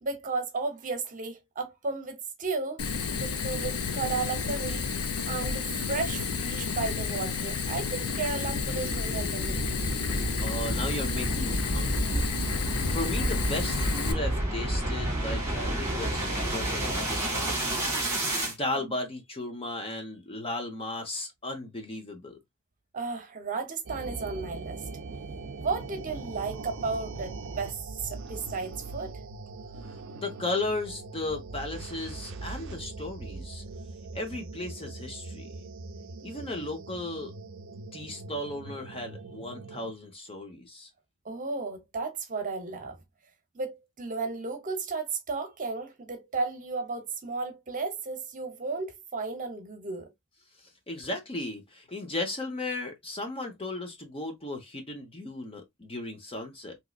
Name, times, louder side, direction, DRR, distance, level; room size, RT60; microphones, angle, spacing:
voice 1, 0.0-2.8 3.2-4.8 5.2-9.8 22.9-24.8 25.6-27.7 28.0-29.1 41.2-43.0 43.5-50.1, right 4 dB, 35° right, 0.8 m, -34 dB
Fire, 2.8-14.1, left 5 dB, 80° left, 0.6 m, -31 dB
sound 1, 7.0-18.5, right 1 dB, 10° right, 1.6 m, -31 dB
voice 2, 10.4-12.3 12.9-17.7 18.4-22.4 29.8-33.6 34.1-35.5 36.2-37.3 37.9-40.9 50.9-56.8, left 2 dB, 25° left, 0.9 m, -35 dB
sound 2, 23.9-39.9, right 3 dB, 60° right, 0.5 m, -41 dB
3.7 x 3.0 x 2.3 m
head